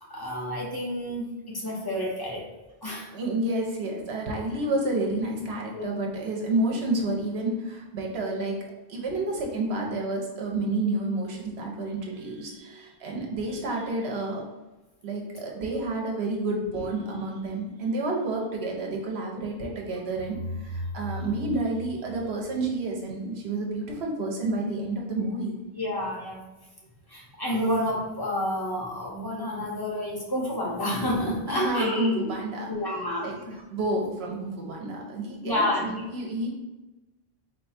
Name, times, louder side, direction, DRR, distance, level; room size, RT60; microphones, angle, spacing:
voice 1, 0.1-2.4 2.8-3.1 5.7-6.1 25.8-26.4 27.1-32.2 32.7-33.3 35.4-35.9, left 1 dB, 25° left, -4 dB, 0.8 m, -29 dB
voice 2, 3.1-14.4 15.0-25.5 31.5-33.4 33.7-36.5, right 2 dB, 80° right, -1 dB, 1.1 m, -30 dB
sound 1, 20.1-23.0, equal, 55° right, 0.7 m, -37 dB
4.2 x 2.3 x 4.2 m, 1.1 s
omnidirectional pair, 1.1 m